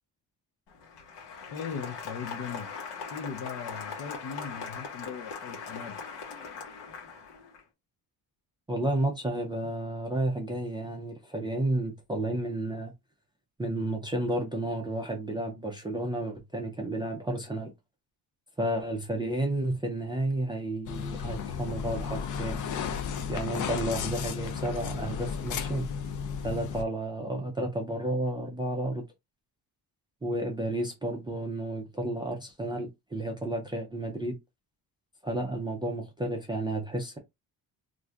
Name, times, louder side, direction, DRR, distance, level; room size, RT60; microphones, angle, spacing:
Applause, 0.7-7.6, left 5 dB, 80° left, 1.1 m, -40 dB
voice 1, 1.5-2.7 3.1-6.0, left 6 dB, 65° left, 0.8 m, -39 dB
voice 2, 8.7-12.9 13.6-17.7 18.6-22.6 23.3-25.9 26.4-29.0 30.2-34.4 35.2-37.2, right 1 dB, 10° right, 0.3 m, -31 dB
sound 1, 20.9-26.8, left 6 dB, 50° left, 0.4 m, -34 dB
2.5 x 2.4 x 3.2 m
cardioid pair, 180°, 40 cm